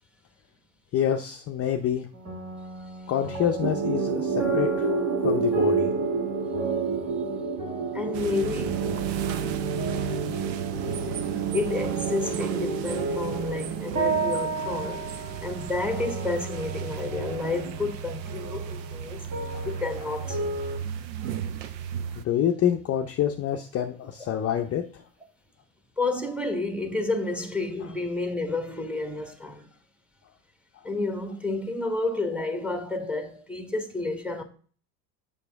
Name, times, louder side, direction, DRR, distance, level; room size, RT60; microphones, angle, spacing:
voice 1, 0.9-2.1 3.1-4.9 5.2-5.9 19.5-19.7 22.1-25.0, left 9 dB, 30° left, 0.6 m, -27 dB
sound 1, 2.1-20.8, right 3 dB, 35° right, 2.0 m, -35 dB
sound 2, 3.6-15.5, right 5 dB, 55° right, 1.3 m, -29 dB
voice 2, 7.3-9.3 11.1-11.2 11.5-20.5 26.0-29.7 30.8-34.4, left 3 dB, ahead, 1.0 m, -31 dB
sound 3, 8.1-22.2, right 9 dB, 85° right, 0.7 m, -36 dB
6.7 x 5.4 x 3.5 m
hypercardioid pair, 85°, 50 cm